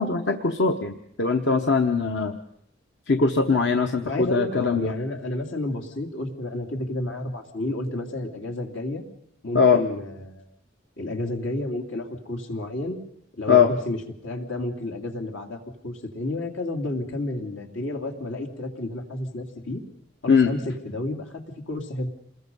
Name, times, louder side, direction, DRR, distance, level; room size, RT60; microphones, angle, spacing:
voice 1, 0.0-2.4 3.1-4.9 9.5-9.8 13.5-13.7 20.3-20.5, left 5 dB, 65° left, 5 dB, 1.1 m, -21 dB
voice 2, 4.0-9.0 9.4-10.5 11.0-13.0 13.3-14.0 14.2-15.6 15.8-19.8 20.2-20.6 20.8-22.1, left 1 dB, 85° left, 3 dB, 2.8 m, -31 dB
27.5 x 21.0 x 5.4 m, 0.70 s
head